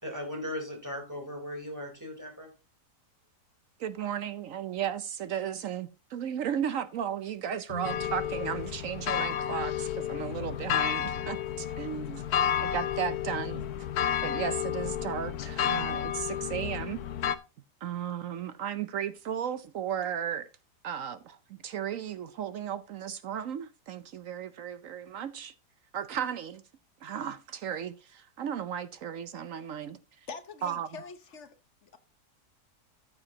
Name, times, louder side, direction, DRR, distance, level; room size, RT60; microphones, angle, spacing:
voice 1, 0.0-2.5, left 1 dB, 10° right, 3.3 m, -38 dB
voice 2, 3.8-12.2 12.6-13.6 14.2-17.0 17.8-20.5 20.8-21.4 21.6-25.5 25.9-26.6 27.0-30.0 30.6-30.9, right 9 dB, 65° right, 0.9 m, -35 dB
Guitar, 7.7-10.2, equal, 35° left, 1.4 m, -46 dB
sound 1, 7.8-17.4, left 9 dB, 70° left, 1.2 m, -31 dB
voice 3, 30.3-32.0, left 5 dB, 50° left, 1.1 m, -45 dB
14.0 x 8.0 x 2.8 m
omnidirectional pair, 1.7 m